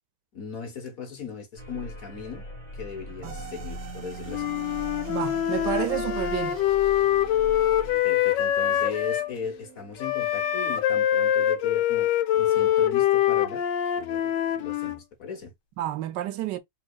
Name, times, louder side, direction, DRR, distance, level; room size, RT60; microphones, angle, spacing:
voice 1, 0.3-2.4 2.7-4.5 8.0-12.1 12.3-13.6 13.9-15.5, left 6 dB, 55° left, 1.5 m, -37 dB
sound 1, 1.6-8.0, left 1 dB, 20° left, 1.5 m, -41 dB
sound 2, 3.2-11.7, right 6 dB, 60° right, 0.8 m, -45 dB
Wind instrument woodwind instrument, 4.3-9.3 10.0-15.0, left 11 dB, 85° left, 1.3 m, -24 dB
voice 2, 5.1-6.6 15.8-16.6, right 13 dB, 80° right, 1.2 m, -30 dB
4.1 x 2.9 x 2.4 m
omnidirectional pair, 1.9 m